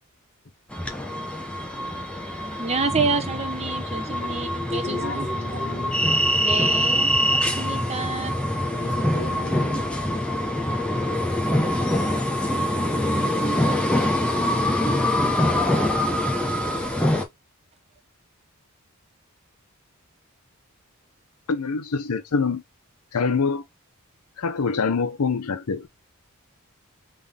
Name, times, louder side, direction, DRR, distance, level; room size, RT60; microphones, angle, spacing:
sound 1, 0.7-17.2, left 1 dB, 5° left, 0.7 m, -24 dB
voice 1, 2.4-5.8 6.4-8.5, right 4 dB, 30° right, 0.9 m, -29 dB
voice 2, 4.8-5.9 8.7-9.9, left 3 dB, 50° left, 0.8 m, -37 dB
voice 3, 21.5-22.6 23.1-23.6 24.4-25.9, left 5 dB, 80° left, 0.6 m, -24 dB
3.7 x 3.6 x 3.5 m
head